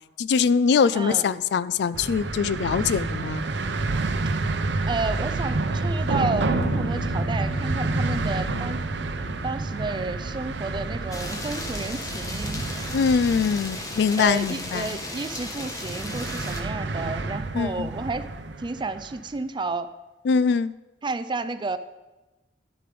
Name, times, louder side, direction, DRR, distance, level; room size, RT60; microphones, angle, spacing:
voice 1, 0.2-3.4 12.9-15.0 17.5-17.9 20.3-20.7, left 6 dB, 70° left, 17 dB, 0.3 m, -23 dB
voice 2, 0.9-1.3 4.9-8.8 9.4-12.6 14.2-18.3 18.6-19.9 21.0-21.8, right 3 dB, 25° right, 12 dB, 0.4 m, -31 dB
sound 1, 1.9-19.2, right 3 dB, 80° right, 0.7 m, -29 dB
sound 2, 6.4-14.8, equal, 50° left, 3.3 m, -40 dB
sound 3, 11.1-16.6, left 2 dB, 20° left, 1.2 m, -35 dB
12.0 x 6.8 x 5.1 m, 1.1 s
head